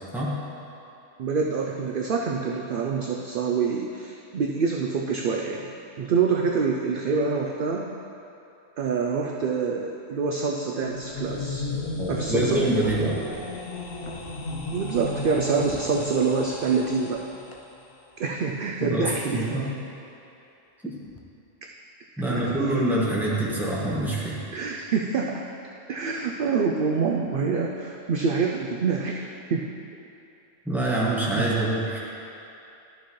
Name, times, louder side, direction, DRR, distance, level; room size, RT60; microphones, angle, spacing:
voice 1, 1.2-5.7 6.0-7.8 8.8-11.7 12.1-12.6 14.5-17.2 18.2-19.5 22.2-22.5 24.5-25.4 25.9-29.7 31.3-31.5, right 5 dB, 60° right, 0 dB, 0.6 m, -26 dB
sound 1, 10.8-17.7, left 3 dB, 80° left, 1.2 m, -35 dB
voice 2, 12.0-13.2 18.8-19.7 20.8-20.9 22.2-24.4 30.6-32.0, right 1 dB, ahead, -7 dB, 1.4 m, -25 dB
sound 2, 12.7-14.4 15.8-15.9 17.5-17.6 19.5-19.6 21.0-21.2, left 3 dB, 40° left, 0.5 m, -46 dB
12.5 x 7.0 x 3.1 m, 2.8 s
omnidirectional pair, 1.3 m